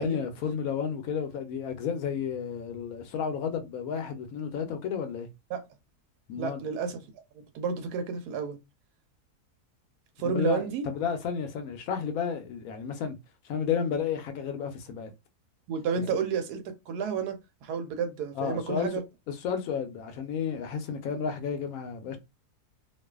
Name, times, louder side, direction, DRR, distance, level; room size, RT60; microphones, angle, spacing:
voice 1, 0.0-5.3 6.3-6.6 10.2-13.2 13.4-15.1 18.3-18.9 19.3-22.2, left 7 dB, 70° left, 1.0 m, -32 dB
voice 2, 6.4-7.0 7.3-8.6 10.2-10.8 15.7-19.0, right 6 dB, 85° right, 1.2 m, -31 dB
2.6 x 2.4 x 2.3 m
omnidirectional pair, 1.6 m